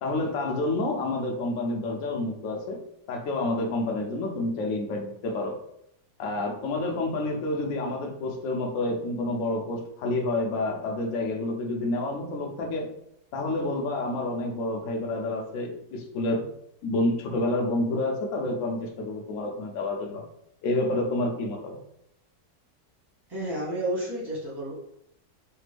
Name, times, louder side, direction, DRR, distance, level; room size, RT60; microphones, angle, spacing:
voice 1, 0.0-2.8 3.1-5.6 6.2-12.9 13.3-16.4 16.8-20.2 20.6-21.8, left 2 dB, 70° left, 1 dB, 0.7 m, -29 dB
voice 2, 23.3-24.7, right 1 dB, 20° right, -6 dB, 0.7 m, -31 dB
3.3 x 2.1 x 3.3 m, 0.75 s
omnidirectional pair, 2.0 m